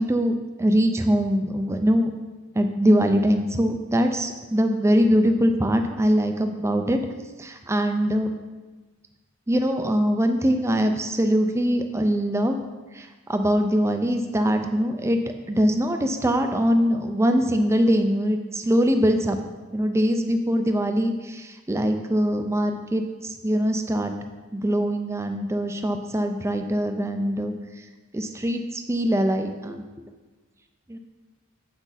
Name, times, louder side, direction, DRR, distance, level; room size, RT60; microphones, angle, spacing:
voice 1, 0.0-2.1 2.5-7.0 7.4-8.3 9.5-12.6 12.9-15.2 15.5-19.4 19.7-24.1 24.5-27.9 28.1-30.0 30.9-31.0, equal, 10° right, 6 dB, 0.4 m, -22 dB
7.9 x 6.0 x 4.1 m, 1.3 s
head